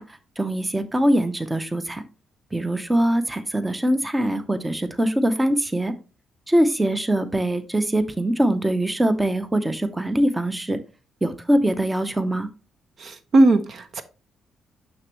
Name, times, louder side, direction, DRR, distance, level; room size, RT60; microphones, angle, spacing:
voice 1, 0.0-2.0 2.5-5.9 6.5-10.8 11.2-12.5, right 1 dB, 15° right, 0.7 m, -23 dB
voice 2, 13.0-14.0, right 2 dB, 50° right, 0.8 m, -18 dB
6.4 x 6.1 x 3.0 m
cardioid pair, 90°, 0 cm